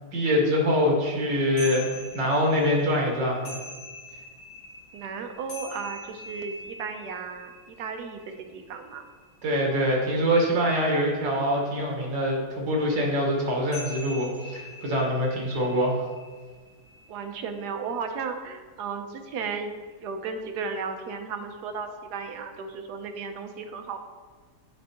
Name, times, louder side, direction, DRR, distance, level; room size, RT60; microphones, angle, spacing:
voice 1, 0.1-1.9 2.1-3.6 9.4-16.0, equal, 90° right, -1 dB, 2.0 m, -24 dB
sound 1, 1.6-10.2 13.7-18.4, left 1 dB, 75° left, 1.9 m, -44 dB
voice 2, 4.9-7.5 7.8-9.0 17.1-19.7 20.0-24.0, right 5 dB, 70° right, 6 dB, 1.2 m, -34 dB
9.2 x 4.3 x 2.9 m, 1.4 s
omnidirectional pair, 1.9 m